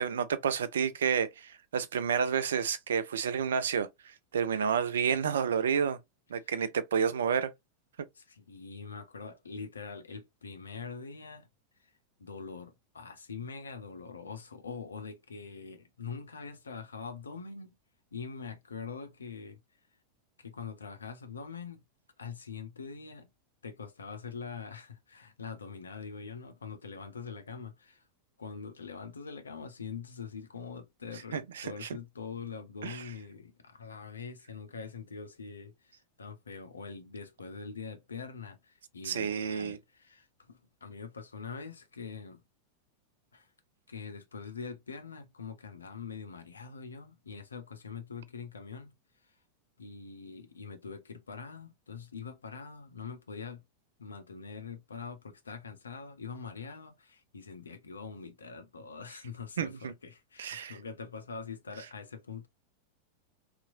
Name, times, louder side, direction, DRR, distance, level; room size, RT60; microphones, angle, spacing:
voice 1, 0.0-6.0 6.3-7.5 31.3-31.9 32.8-33.0 39.0-39.8 59.6-59.9 60.4-60.7, right 7 dB, 65° right, 0.4 m, -30 dB
voice 2, 8.1-11.5 11.8-11.9 12.2-17.8 18.1-19.6 20.4-21.8 22.2-23.3 23.6-28.0 28.4-42.4 43.3-43.5 43.9-48.9 49.2-49.4 49.8-53.6 54.0-62.5, left 5 dB, 75° left, 0.6 m, -44 dB
2.8 x 2.4 x 2.4 m
figure-of-eight pair, 90°, 0 cm